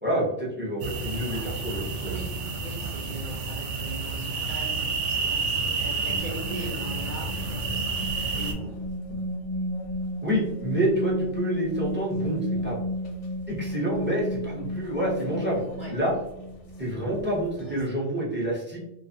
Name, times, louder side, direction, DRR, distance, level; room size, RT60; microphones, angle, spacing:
voice 1, 0.0-2.2 9.1-9.2 10.2-12.9 13.5-15.6 15.9-16.1 16.8-18.8, equal, 15° right, -5 dB, 0.4 m, -28 dB
sound 1, 0.8-8.5, right 4 dB, 90° right, 0.9 m, -30 dB
voice 2, 2.0-8.8 15.8-16.0 17.6-17.8, right 2 dB, 55° right, -4 dB, 0.6 m, -41 dB
sound 2, 6.0-17.8, equal, 85° left, 0.9 m, -33 dB
2.4 x 2.3 x 2.6 m, 0.88 s
omnidirectional pair, 1.2 m